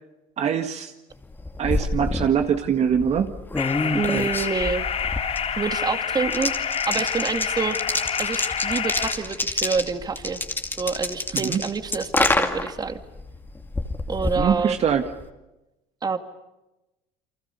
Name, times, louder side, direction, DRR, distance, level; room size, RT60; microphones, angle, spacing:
voice 1, 0.4-0.9 1.6-3.3 11.3-11.6 14.4-15.0, right 8 dB, 45° right, 6 dB, 1.8 m, -23 dB
sound 1, 1.2-15.3, left 2 dB, 15° left, 2.5 m, -29 dB
sound 2, 3.6-9.1, left 7 dB, 45° left, 5.6 m, -27 dB
voice 2, 3.9-4.9 5.6-7.8 8.2-10.4 10.7-13.0 14.1-14.8 16.0-16.2, right 5 dB, 25° right, 8 dB, 2.1 m, -27 dB
29.5 x 24.5 x 6.9 m, 0.97 s
cardioid pair, 110°, 15 cm